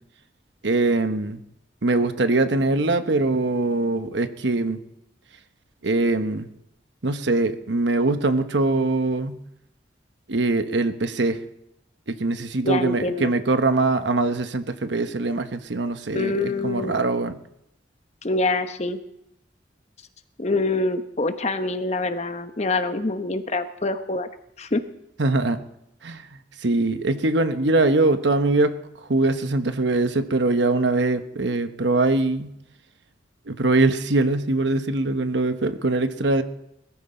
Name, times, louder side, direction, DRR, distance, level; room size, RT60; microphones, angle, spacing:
voice 1, 0.6-1.4 1.8-4.8 5.8-6.5 7.0-9.4 10.3-11.4 12.1-17.4 25.2-25.6 26.0-26.2 26.6-28.7 29.1-32.5 33.5-36.4, right 2 dB, 70° right, 9 dB, 1.1 m, -22 dB
voice 2, 12.6-13.3 16.1-17.0 18.2-19.0 20.4-24.3 24.6-24.8, left 2 dB, 35° left, 9 dB, 0.9 m, -25 dB
21.0 x 14.5 x 4.4 m, 0.81 s
head